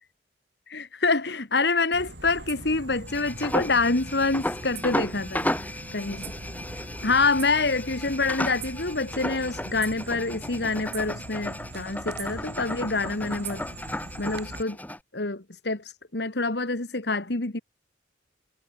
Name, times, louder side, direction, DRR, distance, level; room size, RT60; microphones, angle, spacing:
voice 1, 0.7-6.2 7.0-13.6 14.2-14.8 15.1-17.6, left 3 dB, 65° left, 1.8 m, -26 dB
sound 1, 1.9-14.6, right 2 dB, 65° right, 4.0 m, -41 dB
sound 2, 3.1-15.0, left 1 dB, 10° left, 6.9 m, -34 dB
head